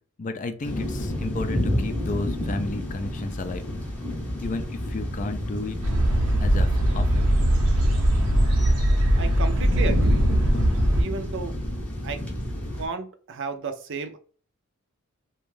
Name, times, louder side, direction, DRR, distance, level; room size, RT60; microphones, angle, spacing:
voice 1, 0.2-3.7 4.4-5.8 6.4-7.2, left 2 dB, 35° left, 0.4 m, -32 dB
sound 1, 0.6-12.9, left 1 dB, 5° left, 0.7 m, -30 dB
sound 2, 5.8-11.0, right 1 dB, 90° right, 0.8 m, -21 dB
voice 2, 9.2-10.3 10.9-11.6 12.0-12.2 12.8-14.2, right 4 dB, 55° right, 0.5 m, -33 dB
2.5 x 2.3 x 3.2 m
head